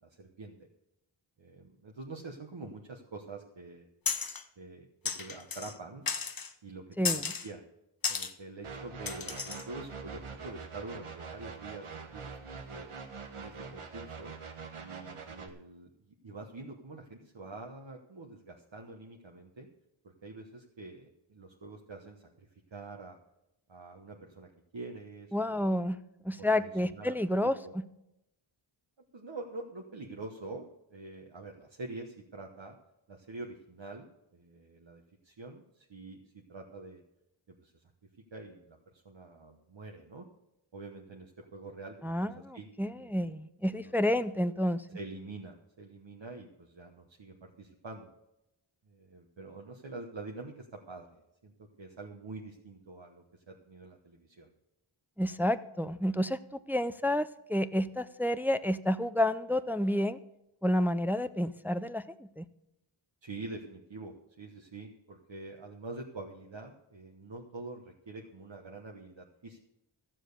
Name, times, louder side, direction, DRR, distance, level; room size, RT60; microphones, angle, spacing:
voice 1, 0.0-0.7 1.4-3.9 4.6-6.0 6.6-7.6 8.1-12.9 13.4-14.3 14.8-19.7 20.0-23.2 23.7-25.7 26.4-27.2 27.4-27.7 29.1-30.6 30.9-32.8 33.1-34.1 34.3-37.0 37.5-37.8 38.3-40.3 40.7-42.7 42.9-43.1 43.7-44.2 44.9-48.1 48.8-51.5 51.8-54.5 63.2-69.6, right 3 dB, 60° right, 1 dB, 1.2 m, -46 dB
sound 1, 4.1-4.4 5.0-5.7 6.1-6.5 7.0-7.5 8.0-8.3 9.1-9.7, left 5 dB, 45° left, 0.9 m, -34 dB
sound 2, 8.6-15.5, right 5 dB, 80° right, 1.4 m, -44 dB
voice 2, 25.3-27.5 42.0-44.8 55.2-56.4 56.7-60.2 60.6-62.5, left 1 dB, 5° right, 13 dB, 0.5 m, -30 dB
13.5 x 7.5 x 6.7 m, 0.88 s
wide cardioid pair, 55°, 50 cm